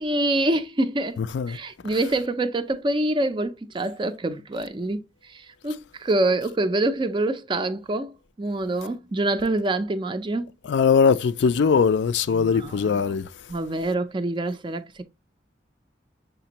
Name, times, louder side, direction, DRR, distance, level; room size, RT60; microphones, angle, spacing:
voice 1, 0.0-1.2 1.5-8.1 8.4-10.5 12.3-13.2 13.5-15.0, right 2 dB, 25° right, 0.4 m, -26 dB
voice 2, 1.2-1.6 10.7-13.3, left 6 dB, 65° left, 0.3 m, -21 dB
6.7 x 2.5 x 2.9 m
head